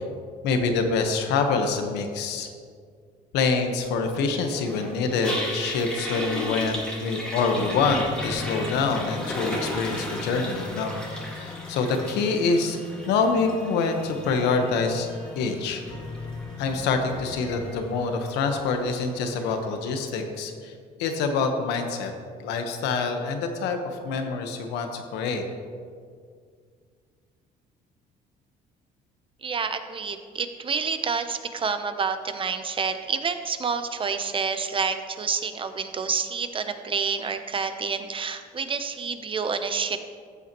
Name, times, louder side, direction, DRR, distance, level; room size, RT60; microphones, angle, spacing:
voice 1, 0.4-2.5 3.3-12.8 13.1-15.1 15.4-15.8 16.6-20.7 21.0-22.1 22.4-25.4, left 4 dB, 90° left, 5 dB, 1.2 m, -26 dB
Toilet flush, 4.4-19.6, left 1 dB, 5° left, 1.9 m, -36 dB
sound 1, 7.5-17.7, left 4 dB, 65° left, 1.8 m, -40 dB
voice 2, 29.4-40.0, right 5 dB, 30° right, 9 dB, 0.7 m, -28 dB
14.5 x 8.3 x 3.0 m, 2.1 s
cardioid pair, 110°, 17 cm